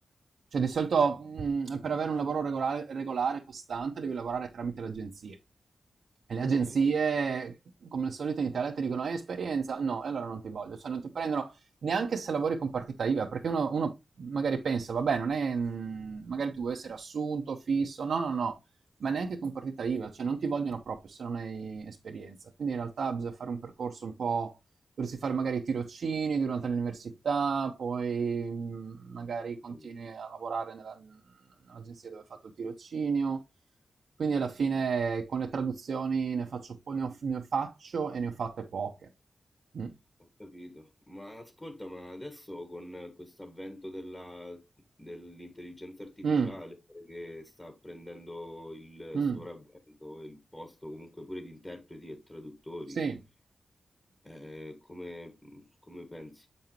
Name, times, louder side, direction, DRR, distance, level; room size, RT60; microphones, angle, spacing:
voice 1, 0.5-5.4 6.3-7.5 7.9-11.6 11.8-13.9 14.2-18.6 19.0-24.5 25.0-31.2 31.7-32.2 32.6-33.4 34.2-38.9 39.7-39.9 46.2-46.5 49.1-49.4 53.0-53.1, right 5 dB, 85° right, 0.8 m, -31 dB
voice 2, 40.2-44.6 45.0-53.0 54.2-56.5, left 1 dB, 20° left, 1.5 m, -44 dB
7.7 x 5.4 x 2.9 m
wide cardioid pair, 95°, 0 cm